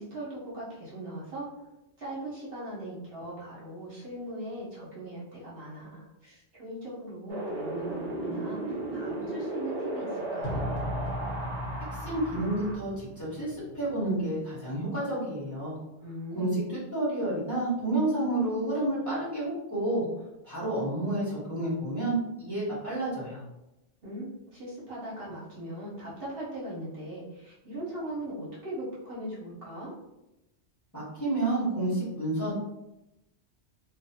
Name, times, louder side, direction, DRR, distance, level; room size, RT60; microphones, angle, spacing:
voice 1, 0.0-1.5 2.0-10.6 16.0-16.5 24.0-29.9, right 1 dB, 60° right, -7 dB, 1.2 m, -39 dB
Wind, 7.3-12.7, right 2 dB, 35° right, 0.8 m, -35 dB
sound 1, 10.4-14.4, equal, 55° left, 0.8 m, -37 dB
voice 2, 12.0-15.8 16.3-20.0 20.4-23.4 30.9-32.5, right 1 dB, 15° left, -9 dB, 1.0 m, -30 dB
2.6 x 2.3 x 2.7 m, 0.93 s
omnidirectional pair, 1.1 m